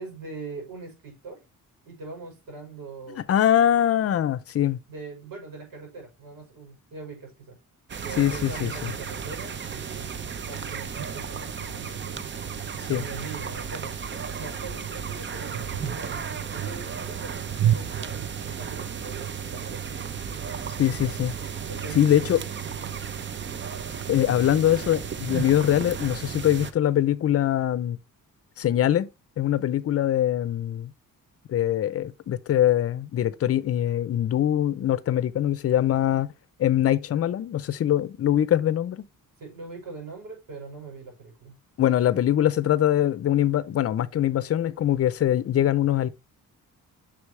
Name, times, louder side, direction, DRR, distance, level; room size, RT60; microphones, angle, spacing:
voice 1, 0.0-1.4 1.8-3.2 4.9-7.6 8.0-12.2 12.9-14.0 14.4-20.0 21.7-22.3 22.8-23.0 39.4-41.6, right 4 dB, 80° right, 5.6 m, -41 dB
voice 2, 3.3-4.8 8.2-8.7 12.9-13.0 20.8-21.3 21.9-22.4 24.1-28.0 28.6-29.1 29.4-30.9 31.5-36.3 36.6-39.1 41.8-46.1, left 11 dB, 45° left, 0.6 m, -23 dB
sound 1, 7.9-26.7, right 8 dB, 35° right, 0.6 m, -33 dB
8.2 x 6.1 x 3.2 m
wide cardioid pair, 155°, 34 cm